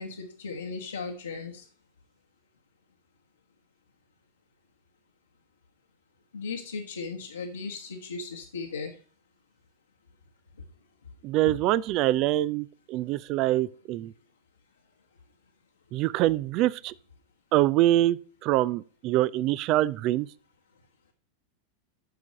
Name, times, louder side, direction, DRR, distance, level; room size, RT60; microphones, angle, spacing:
voice 1, 0.0-1.6 6.3-8.9, left 4 dB, 75° left, 1.2 m, -36 dB
voice 2, 11.2-14.1 15.9-16.9 17.5-20.3, right 15 dB, 40° right, 0.4 m, -25 dB
9.4 x 6.1 x 6.4 m
figure-of-eight pair, 90°, 0 cm